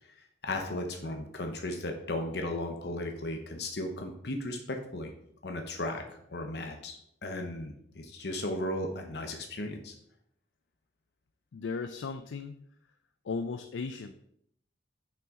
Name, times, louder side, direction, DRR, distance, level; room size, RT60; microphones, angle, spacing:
voice 1, 0.2-5.1 5.4-9.9, left 1 dB, 60° left, 3 dB, 0.8 m, -36 dB
voice 2, 11.5-12.6 13.2-14.1, left 4 dB, 85° left, 9 dB, 0.4 m, -36 dB
6.2 x 5.8 x 3.7 m, 0.72 s
head